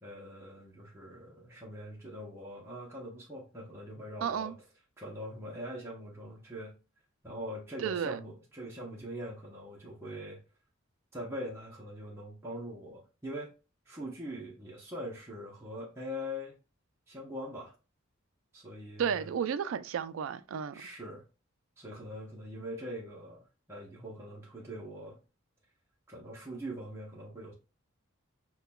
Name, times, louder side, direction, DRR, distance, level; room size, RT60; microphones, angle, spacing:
voice 1, 0.0-4.5 5.0-6.7 7.2-10.4 11.1-13.5 13.9-16.5 17.1-17.7 18.5-19.3 20.7-21.2 21.8-25.2 26.1-27.5, equal, 10° right, 0.7 m, -42 dB
voice 2, 4.2-4.5 7.8-8.2 19.0-20.8, right 7 dB, 65° right, 0.3 m, -32 dB
5.6 x 2.2 x 2.2 m
head